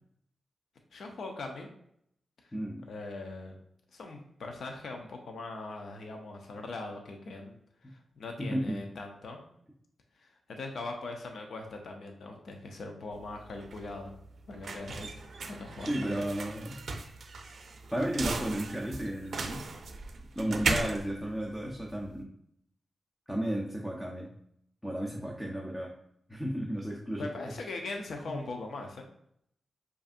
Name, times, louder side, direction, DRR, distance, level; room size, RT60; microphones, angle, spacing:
voice 1, 0.9-1.7 2.4-2.5 2.9-3.6 3.9-7.6 7.8-9.4 10.2-14.1 14.5-15.2 15.5-16.3 27.2-29.0, left 2 dB, 70° left, 3 dB, 0.5 m, -41 dB
voice 2, 2.5-2.9 7.8-7.9 8.4-8.8 15.8-16.8 17.9-19.7 20.3-22.3 23.3-24.3 24.8-25.9 26.3-27.3 28.3-28.4, right 1 dB, 5° left, -1 dB, 0.6 m, -33 dB
sound 1, 13.1-22.2, right 3 dB, 65° right, 0.4 m, -37 dB
5.1 x 2.5 x 2.5 m, 0.72 s
wide cardioid pair, 100°, 0 cm